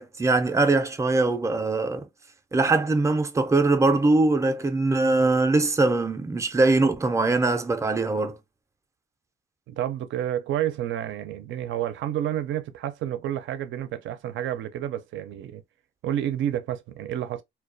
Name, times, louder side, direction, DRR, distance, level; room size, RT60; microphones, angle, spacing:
voice 1, 0.0-2.1 2.5-8.4, right 3 dB, 15° right, 0.4 m, -22 dB
voice 2, 9.7-15.6 16.0-17.4, right 11 dB, 70° right, 0.5 m, -30 dB
2.3 x 2.2 x 2.5 m
cardioid pair, 90°, 20 cm